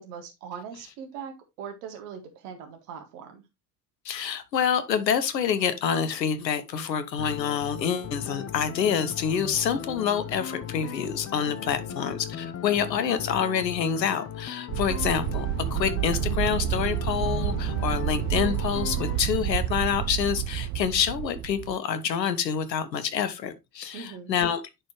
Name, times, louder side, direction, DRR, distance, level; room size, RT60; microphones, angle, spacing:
voice 1, 0.0-3.4 11.6-12.0 23.9-24.3, right 7 dB, 70° right, 1.9 m, -41 dB
voice 2, 4.0-24.6, left 8 dB, 85° left, 0.9 m, -27 dB
sound 1, 7.2-19.2, left 9 dB, 30° left, 0.7 m, -37 dB
sound 2, 14.7-21.8, right 13 dB, 45° right, 0.7 m, -29 dB
10.5 x 4.5 x 3.1 m
figure-of-eight pair, 60°, 49 cm